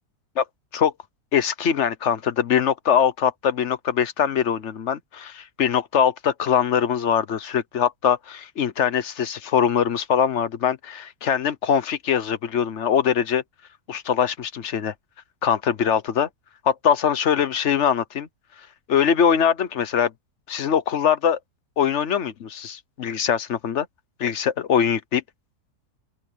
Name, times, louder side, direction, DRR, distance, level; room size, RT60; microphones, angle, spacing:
voice 1, 1.3-13.4 13.9-14.9 15.4-16.3 16.6-18.3 18.9-20.1 20.5-21.4 21.8-23.9 24.2-25.2, left 8 dB, 50° left, 1.2 m, -22 dB
open air
omnidirectional pair, 1.7 m